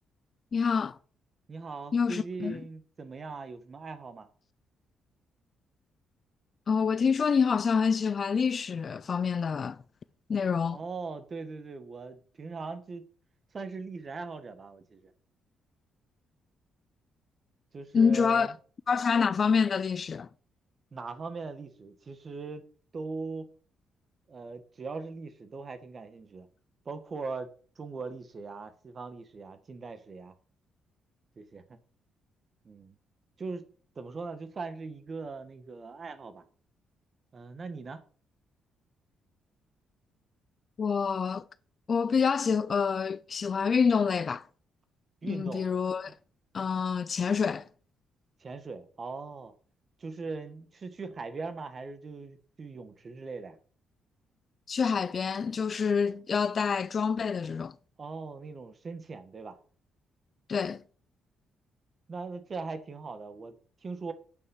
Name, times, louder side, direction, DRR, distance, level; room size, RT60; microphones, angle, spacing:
voice 1, 0.5-1.0 1.9-2.6 6.7-9.8 10.3-10.8 17.9-18.5 18.9-20.3 40.8-41.4 41.9-44.4 45.3-46.1 46.5-47.6 54.7-57.7 60.5-60.8, left 6 dB, 45° left, 0.5 m, -27 dB
voice 2, 1.5-4.3 10.7-13.1 13.5-15.1 17.7-18.6 20.9-22.6 22.9-23.5 24.3-26.5 26.9-27.5 27.8-30.3 31.4-31.8 32.7-33.0 33.4-33.7 34.0-36.4 37.3-38.0 45.2-45.7 48.4-49.5 50.0-53.6 58.0-59.6 62.1-64.1, right 4 dB, 40° right, 1.8 m, -40 dB
9.4 x 5.6 x 7.3 m
cardioid pair, 90°, 0 cm